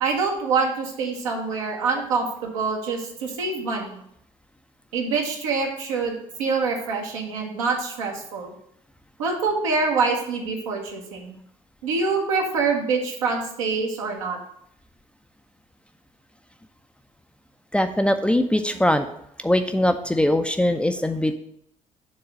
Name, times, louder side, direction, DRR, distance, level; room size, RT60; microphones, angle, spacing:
voice 1, 0.0-4.0 4.9-6.1 6.4-8.5 9.2-11.3 11.8-14.4, right 4 dB, 70° right, 1 dB, 1.2 m, -25 dB
voice 2, 17.7-19.1 19.4-21.3, left 1 dB, 5° left, 7 dB, 0.5 m, -21 dB
6.9 x 3.7 x 6.4 m, 0.72 s
figure-of-eight pair, 50°, 17 cm